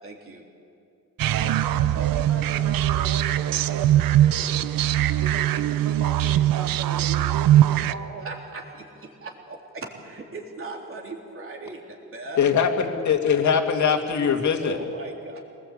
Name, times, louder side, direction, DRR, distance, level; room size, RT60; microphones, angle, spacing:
voice 1, 0.0-0.5 8.2-12.4 14.6-15.4, right 2 dB, 40° right, 0 dB, 3.6 m, -39 dB
sound 1, 1.2-7.9, right 12 dB, 85° right, 0.7 m, -21 dB
voice 2, 1.3-4.7 5.2-8.3, right 4 dB, 65° right, 1 dB, 3.2 m, -38 dB
voice 3, 12.4-14.8, left 7 dB, 60° left, 4 dB, 2.4 m, -22 dB
24.0 x 19.5 x 8.5 m, 2.5 s
cardioid pair, 125°, 33 cm